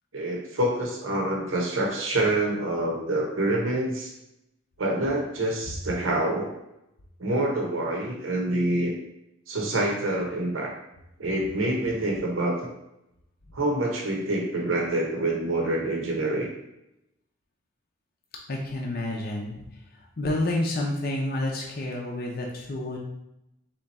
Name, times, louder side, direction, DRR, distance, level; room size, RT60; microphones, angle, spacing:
voice 1, 0.1-4.1 4.8-6.5 7.2-8.9 9.5-10.7 11.2-12.7 13.5-16.5, right 1 dB, 75° right, -1 dB, 0.9 m, -26 dB
voice 2, 18.5-19.5 20.2-23.0, left 1 dB, 50° left, -1 dB, 0.6 m, -29 dB
3.5 x 2.9 x 4.1 m, 0.86 s
head